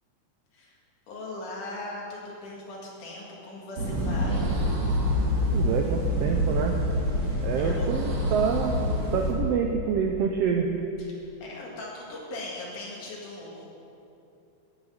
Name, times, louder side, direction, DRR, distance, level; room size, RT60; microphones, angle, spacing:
voice 1, 1.1-4.6 7.2-7.9 11.0-13.7, left 2 dB, 90° left, -4 dB, 3.4 m, -39 dB
sound 1, 3.8-9.3, equal, 60° right, 2.7 m, -26 dB
voice 2, 5.5-6.7 7.4-8.7 9.1-10.7, right 7 dB, 85° right, 3 dB, 1.4 m, -27 dB
10.0 x 6.0 x 8.6 m, 2.8 s
omnidirectional pair, 3.5 m